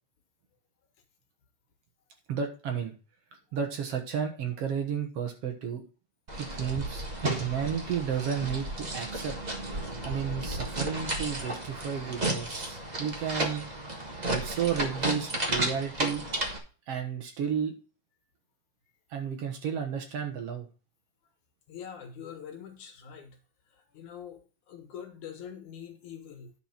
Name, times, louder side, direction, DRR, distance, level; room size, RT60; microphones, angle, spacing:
voice 1, 2.3-2.9 3.5-5.8 6.4-9.4 10.0-13.7 14.2-16.2 16.9-17.7 19.1-20.7, right 7 dB, 60° right, 5 dB, 2.1 m, -32 dB
sound 1, 6.3-16.6, right 1 dB, 40° right, 0.5 m, -33 dB
voice 2, 21.7-23.4 23.7-26.5, left 8 dB, 80° left, 6 dB, 2.9 m, -44 dB
10.0 x 4.7 x 5.9 m, 0.35 s
omnidirectional pair, 3.4 m